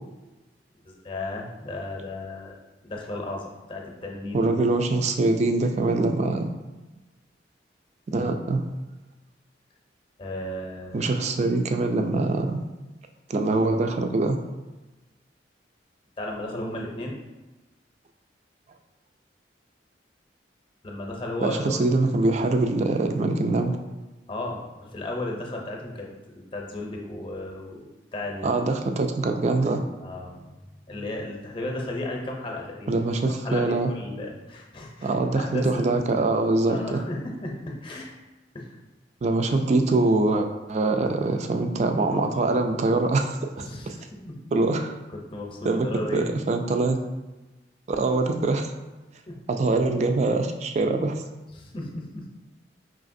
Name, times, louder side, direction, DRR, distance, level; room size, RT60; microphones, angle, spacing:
voice 1, 0.8-4.5 8.2-8.3 10.2-11.1 16.2-17.2 20.8-21.9 24.3-28.6 30.0-35.9 36.7-38.1 38.5-38.8 43.6-43.9 44.2-44.3 45.3-46.4 49.3-49.4 51.5-52.3, left 2 dB, 30° left, 0 dB, 0.6 m, -35 dB
voice 2, 4.3-6.5 8.1-8.6 10.9-12.6 13.3-14.4 21.4-23.8 28.4-29.8 32.9-33.9 35.0-37.0 39.2-44.0 44.5-44.9 45.6-47.0 47.9-48.7 49.5-51.2, right 2 dB, 40° right, 6 dB, 0.3 m, -24 dB
4.9 x 3.3 x 2.6 m, 1.1 s
head